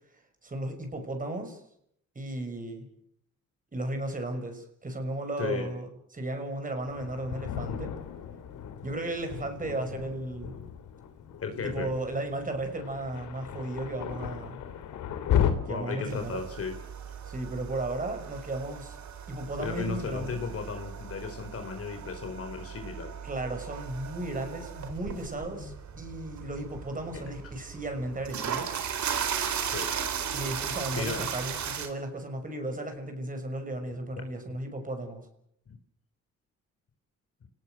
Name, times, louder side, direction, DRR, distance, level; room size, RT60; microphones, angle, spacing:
voice 1, 0.1-1.6 2.1-2.9 3.7-7.9 8.8-10.5 11.6-14.6 15.7-16.4 17.2-19.0 19.3-20.4 23.2-28.7 30.3-35.3, right 1 dB, 25° right, 6 dB, 6.1 m, -35 dB
voice 2, 5.4-5.7 11.4-11.9 15.6-16.7 19.6-23.1 25.5-25.7 29.6-29.9 30.9-31.2 35.7-35.8, left 5 dB, 50° left, 6 dB, 4.3 m, -35 dB
Thunder, 6.9-15.5, left 10 dB, 85° left, 3.0 m, -34 dB
sound 1, 16.1-31.9, right 8 dB, 65° right, 4.1 m, -37 dB
29.5 x 19.0 x 8.0 m, 0.71 s
cardioid pair, 90°, 30 cm